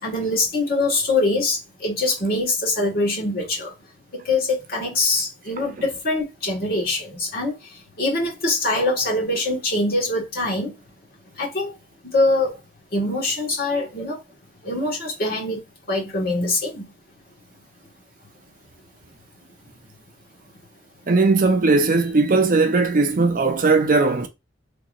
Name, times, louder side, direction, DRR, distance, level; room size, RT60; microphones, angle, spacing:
voice 1, 0.0-3.7 4.1-10.7 11.4-11.7 12.0-12.6 12.9-14.2 14.6-15.6 15.9-16.9, left 2 dB, 55° left, 1.5 m, -23 dB
voice 2, 21.1-24.3, right 3 dB, 50° right, 0.5 m, -18 dB
3.7 x 2.9 x 2.4 m
head